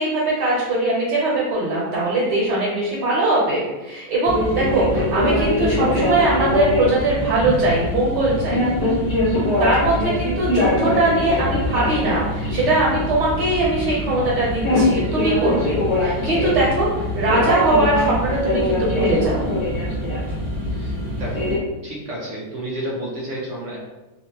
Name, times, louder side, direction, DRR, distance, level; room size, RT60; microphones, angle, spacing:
voice 1, 0.0-8.6 9.6-19.4, right 2 dB, 65° right, -7 dB, 1.5 m, -21 dB
sound 1, 4.2-21.6, left 1 dB, 25° left, 0.6 m, -23 dB
voice 2, 20.7-21.5 21.8-23.8, right 1 dB, 80° right, -5 dB, 0.6 m, -31 dB
3.4 x 2.7 x 2.9 m, 1.1 s
omnidirectional pair, 2.2 m